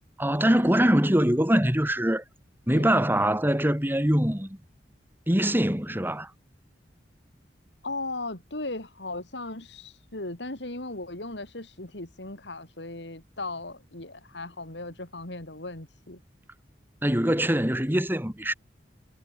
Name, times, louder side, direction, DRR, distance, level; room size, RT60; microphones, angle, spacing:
voice 1, 0.2-2.2 2.7-4.6 5.3-6.3 17.0-18.5, equal, 10° right, 3.4 m, -23 dB
voice 2, 2.7-3.0 7.8-16.2, left 2 dB, 70° left, 3.9 m, -37 dB
head